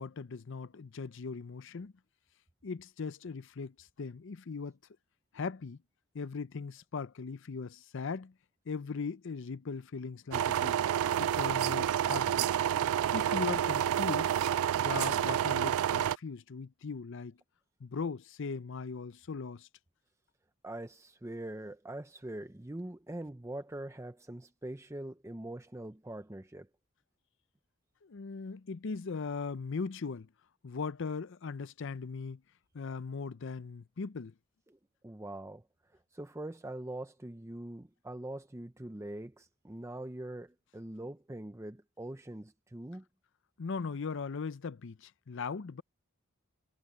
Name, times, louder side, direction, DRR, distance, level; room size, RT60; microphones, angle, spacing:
voice 1, 0.0-1.9 2.6-4.8 5.3-5.8 6.1-8.3 8.7-10.8 11.2-12.5 13.1-14.3 14.8-17.4 17.8-19.7 28.0-30.3 30.6-32.4 32.7-34.3 43.6-45.8, left 5 dB, 60° left, 0.5 m, -39 dB
sound 1, 10.3-16.2, right 10 dB, 80° right, 0.3 m, -29 dB
voice 2, 20.6-26.7 34.7-34.8 35.0-35.6 36.1-43.0, right 1 dB, 15° right, 0.6 m, -43 dB
head